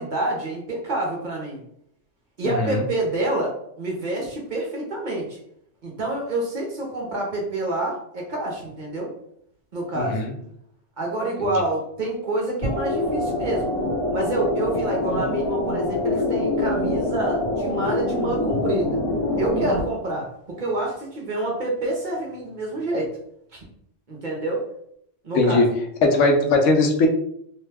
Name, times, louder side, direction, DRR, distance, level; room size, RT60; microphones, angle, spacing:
voice 1, 0.0-1.6 2.4-5.4 5.8-9.1 9.7-10.2 11.0-13.7 14.1-19.0 19.4-23.1 23.5-23.6 24.1-24.7 25.2-25.7, right 2 dB, 50° right, -1 dB, 0.7 m, -27 dB
voice 2, 2.4-2.8 10.0-10.3 25.3-25.7 26.0-27.1, left 2 dB, 80° left, 3 dB, 0.9 m, -19 dB
sound 1, 12.6-19.8, left 2 dB, 50° left, 1.5 m, -25 dB
2.7 x 2.2 x 3.2 m, 0.70 s
omnidirectional pair, 1.3 m